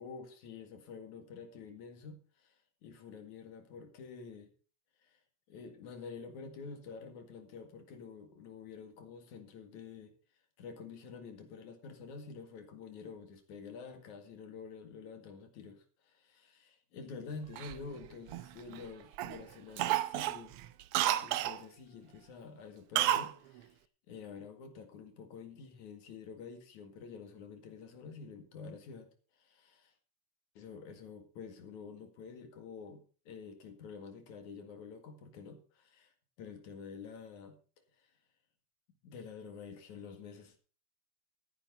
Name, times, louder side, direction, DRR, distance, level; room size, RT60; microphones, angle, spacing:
voice 1, 0.0-4.5 5.0-5.2 5.5-10.1 10.6-20.5 21.0-23.8 24.1-29.9 30.6-37.6 38.0-38.1 39.0-40.6, left 5 dB, 80° left, 7 dB, 3.4 m, -48 dB
Cough, 17.6-18.8 19.2-19.4 19.8-21.6 22.9-23.3 23.6-23.7, right 12 dB, 75° right, 1.3 m, -31 dB
14.0 x 10.5 x 4.0 m, 0.37 s
omnidirectional pair, 3.3 m